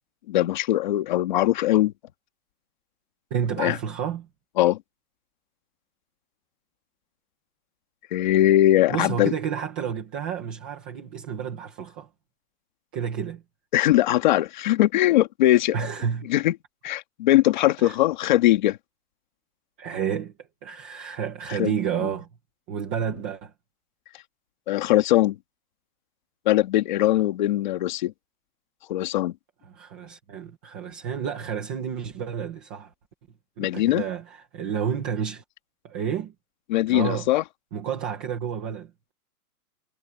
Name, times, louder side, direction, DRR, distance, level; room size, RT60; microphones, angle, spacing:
voice 1, 0.3-1.9 3.6-3.8 4.6-4.8 8.1-9.3 13.7-15.8 16.3-16.5 16.8-18.8 21.6-21.7 24.7-25.4 26.4-28.1 28.9-29.3 33.6-34.0 36.7-37.4, left 14 dB, 30° left, 1.7 m, -21 dB
voice 2, 3.3-4.3 8.9-12.1 12.9-13.4 15.7-16.3 17.8-18.0 19.8-20.3 20.6-22.3 22.7-23.5 29.7-32.9 33.6-35.4 35.8-36.3 36.9-37.3 37.7-38.9, right 8 dB, 5° right, 0.6 m, -30 dB
hypercardioid pair, 175°, 46 cm